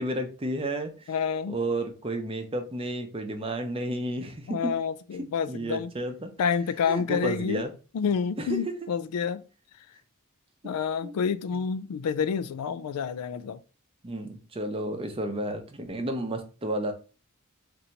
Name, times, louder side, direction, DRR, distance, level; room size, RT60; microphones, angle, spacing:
voice 1, 0.0-1.1 1.5-4.8 5.5-6.3 6.9-7.7 8.4-8.7 10.6-10.7 11.0-11.1 11.5-11.7 14.0-16.9, right 1 dB, 25° right, 0.6 m, -32 dB
voice 2, 1.1-1.6 4.5-5.9 6.4-7.6 7.9-9.4 10.6-13.6, left 6 dB, 85° left, 0.4 m, -28 dB
2.8 x 2.6 x 4.3 m
head